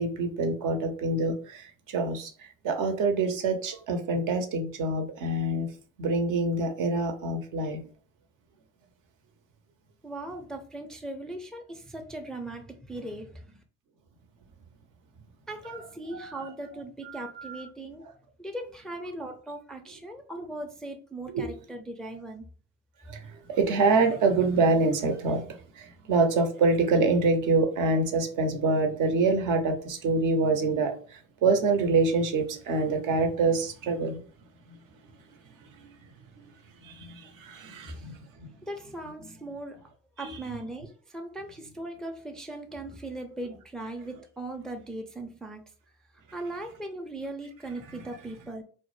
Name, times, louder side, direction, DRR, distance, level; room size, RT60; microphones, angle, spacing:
voice 1, 0.0-2.3 2.6-5.7 6.0-7.8 16.1-16.3 17.2-17.6 21.3-21.4 23.1-23.2 23.5-30.9 31.4-34.2 36.8-38.2 40.2-40.4, right 3 dB, 60° right, 0.6 m, -26 dB
voice 2, 10.0-13.6 15.5-18.0 18.4-22.5 37.9-38.1 38.6-39.8 40.2-45.6 46.3-48.6, right 1 dB, ahead, 0.4 m, -39 dB
2.0 x 2.0 x 3.0 m
hypercardioid pair, 50°, 35 cm